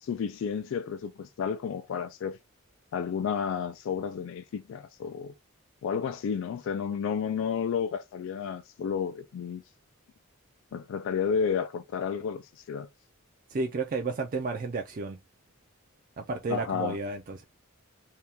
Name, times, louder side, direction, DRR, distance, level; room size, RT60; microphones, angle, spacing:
voice 1, 0.0-2.4 2.9-5.3 5.8-9.6 10.7-12.9 16.5-17.0, left 7 dB, 65° left, 0.3 m, -31 dB
voice 2, 13.5-15.2 16.2-17.4, right 3 dB, 40° right, 0.4 m, -32 dB
2.8 x 2.2 x 3.4 m
head